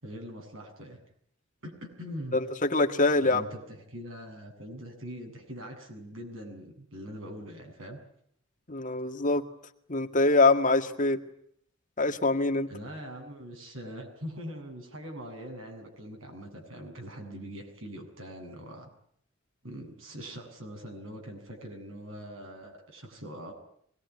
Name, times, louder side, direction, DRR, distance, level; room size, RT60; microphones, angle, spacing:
voice 1, 0.0-1.0 1.6-2.4 3.2-8.0 12.7-18.9 19.6-23.5, equal, 80° right, 3 dB, 7.7 m, -42 dB
voice 2, 2.3-3.4 8.7-9.4 9.9-11.2 12.0-12.7, left 3 dB, 40° left, 6 dB, 2.0 m, -24 dB
24.5 x 20.5 x 9.7 m, 0.69 s
head